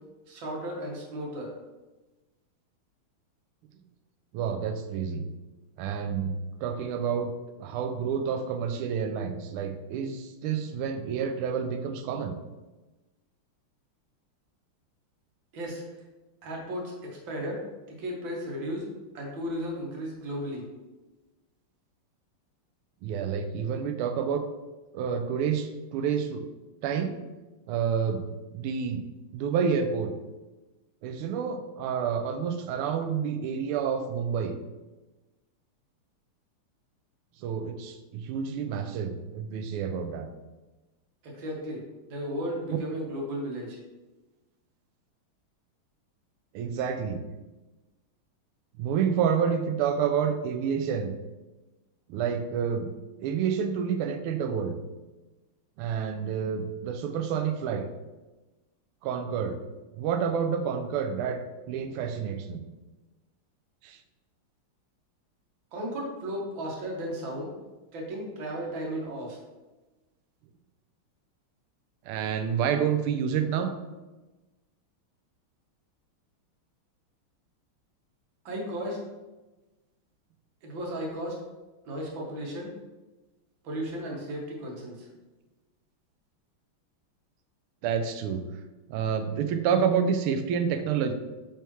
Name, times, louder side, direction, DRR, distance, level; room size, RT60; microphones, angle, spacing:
voice 1, 0.3-1.5 15.5-15.8 16.4-17.6 17.9-18.9 19.1-20.6 41.2-41.8 42.1-43.8 65.7-67.5 67.9-69.4 78.5-79.0 80.6-81.4 81.9-82.7 83.6-85.1, equal, 65° right, -1 dB, 2.0 m, -34 dB
voice 2, 4.3-5.3 5.8-7.3 7.6-12.4 23.0-24.5 24.9-26.5 26.8-27.1 27.7-29.0 29.3-30.1 31.0-34.6 37.4-40.3 42.7-42.8 46.5-47.3 48.8-51.1 52.1-52.9 53.2-54.8 55.8-57.9 59.0-59.6 59.9-62.6 63.8-64.0 72.0-73.7 87.8-88.4 88.9-91.1, right 7 dB, 85° right, 8 dB, 1.5 m, -29 dB
8.9 x 3.4 x 3.1 m, 1.1 s
omnidirectional pair, 2.4 m